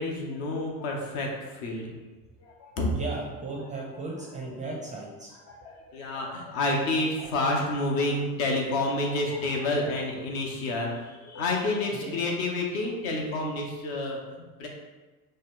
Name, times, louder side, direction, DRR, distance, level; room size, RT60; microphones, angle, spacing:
voice 1, 0.0-1.9 2.4-2.9 3.9-4.0 4.9-5.0 5.5-14.7, left 2 dB, 60° left, 0 dB, 0.8 m, -29 dB
voice 2, 2.9-5.3 11.3-11.4 11.9-12.1, right 3 dB, 15° right, -3 dB, 0.4 m, -36 dB
3.1 x 2.0 x 3.6 m, 1.2 s
figure-of-eight pair, 65°, 47 cm